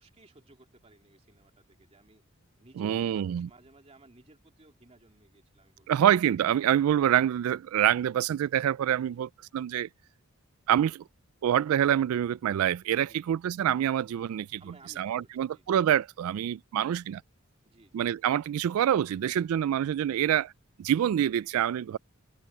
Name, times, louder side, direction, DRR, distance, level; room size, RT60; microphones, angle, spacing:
voice 1, 0.0-2.2 2.6-6.0 8.9-9.2 13.0-13.4 14.6-15.8 16.7-17.0 17.6-18.0 20.1-20.4 21.9-22.0, right 2 dB, 30° right, 2.8 m, -58 dB
voice 2, 2.8-3.5 5.9-9.9 10.7-11.0 11.4-14.6 15.0-17.2 17.9-20.5 20.8-22.0, right 10 dB, 90° right, 0.3 m, -26 dB
head